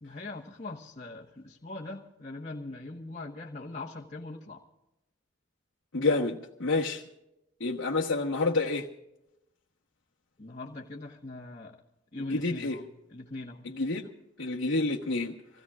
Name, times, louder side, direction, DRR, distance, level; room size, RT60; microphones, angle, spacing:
voice 1, 0.0-4.6 10.4-11.8 12.1-12.8 13.1-13.7, left 2 dB, 35° left, 1.2 m, -41 dB
voice 2, 5.9-7.0 7.6-8.9 12.2-12.8 13.6-14.1 14.4-15.3, left 3 dB, 85° left, 1.3 m, -28 dB
26.5 x 17.0 x 2.4 m
head